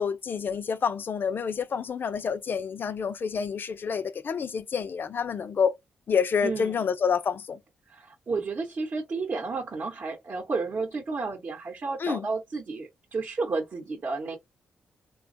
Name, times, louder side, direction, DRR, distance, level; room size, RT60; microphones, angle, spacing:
voice 1, 0.0-5.7 6.1-7.6 12.0-12.3, left 6 dB, 55° left, 0.4 m, -28 dB
voice 2, 6.4-6.9 7.9-14.4, right 4 dB, 55° right, 0.8 m, -32 dB
3.1 x 2.2 x 2.5 m
hypercardioid pair, 40°, 4 cm